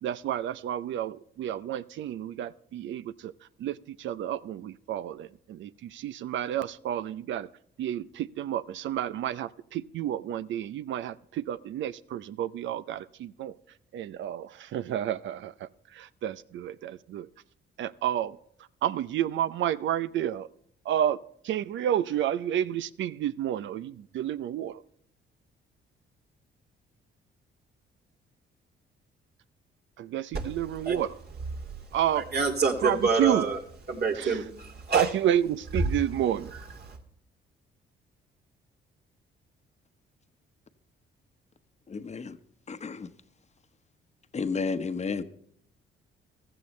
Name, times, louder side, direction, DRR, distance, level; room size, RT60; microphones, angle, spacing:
voice 1, 0.0-3.3 3.6-7.5 7.8-13.5 13.9-17.3 17.8-18.4 18.8-20.5 20.9-24.8 30.0-31.2 31.9-32.3 32.8-33.5 34.1-34.4 34.9-36.5, right 11 dB, 70° right, 0.5 m, -30 dB
voice 2, 32.2-33.6 33.9-35.1 36.9-37.0, right 4 dB, 55° right, 2.4 m, -27 dB
voice 3, 41.9-42.4 42.7-43.1 44.3-45.2, left 4 dB, 35° left, 1.0 m, -32 dB
15.5 x 13.5 x 3.2 m
cardioid pair, 90°, 20 cm